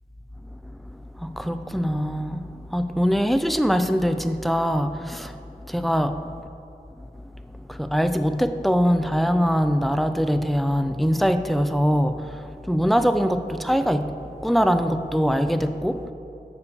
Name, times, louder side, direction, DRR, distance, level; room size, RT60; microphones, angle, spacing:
voice 1, 0.5-6.2 7.0-7.1 7.5-16.1, equal, ahead, 9 dB, 0.5 m, -23 dB
7.0 x 6.7 x 7.0 m, 2.6 s
wide cardioid pair, 45°, 17 cm